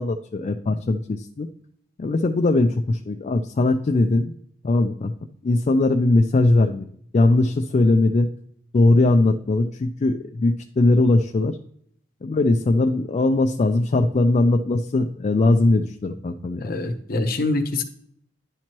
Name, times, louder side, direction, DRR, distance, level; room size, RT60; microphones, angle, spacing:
voice 1, 0.0-1.5 2.0-4.3 4.6-5.1 5.4-6.9 7.1-8.3 8.7-11.6 12.2-16.7, left 2 dB, 40° left, 5 dB, 0.3 m, -20 dB
voice 2, 16.6-17.8, left 2 dB, 55° left, 7 dB, 0.8 m, -24 dB
10.5 x 4.4 x 3.0 m, 0.68 s
head